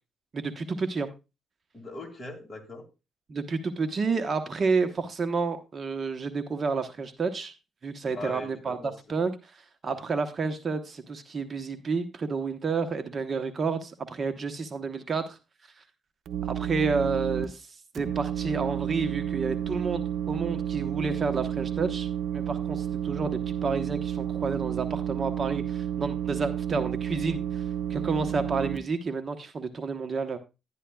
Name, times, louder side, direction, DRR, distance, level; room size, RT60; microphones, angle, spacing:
voice 1, 0.3-1.1 3.3-7.5 7.8-15.4 16.4-27.6 27.9-30.4, right 4 dB, 40° right, 8 dB, 1.0 m, -30 dB
voice 2, 1.7-2.9 8.1-9.3 9.9-10.0, left 2 dB, 25° left, 3 dB, 2.2 m, -41 dB
sound 1, 16.3-17.4 17.9-28.8, right 10 dB, 70° right, 0.8 m, -31 dB
11.5 x 10.0 x 2.3 m, 0.27 s
cardioid pair, 90°, 0 cm